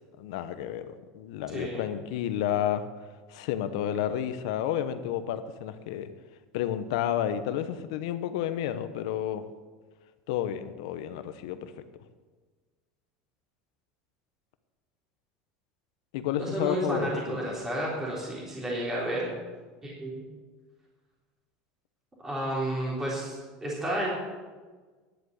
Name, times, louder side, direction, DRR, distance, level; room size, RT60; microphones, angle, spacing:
voice 1, 0.2-2.8 3.3-6.1 6.5-9.4 10.3-11.7 16.1-17.6, left 10 dB, 75° left, 10 dB, 1.0 m, -31 dB
voice 2, 1.5-1.8 16.4-19.3 19.8-20.2 22.2-24.1, right 1 dB, 15° right, -5 dB, 3.6 m, -31 dB
11.0 x 7.8 x 8.1 m, 1.4 s
supercardioid pair, 135°, 3 cm